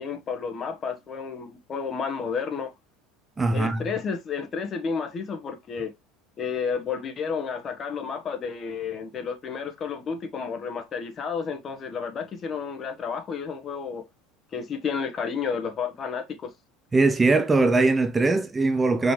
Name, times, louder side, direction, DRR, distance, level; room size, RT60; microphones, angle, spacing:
voice 1, 0.0-2.7 3.5-5.9 6.4-14.1 14.5-16.5, left 6 dB, 35° left, 1.3 m, -31 dB
voice 2, 3.4-3.8 16.9-19.1, right 3 dB, 15° right, 0.5 m, -21 dB
5.1 x 3.2 x 3.1 m
supercardioid pair, 105°, 0 cm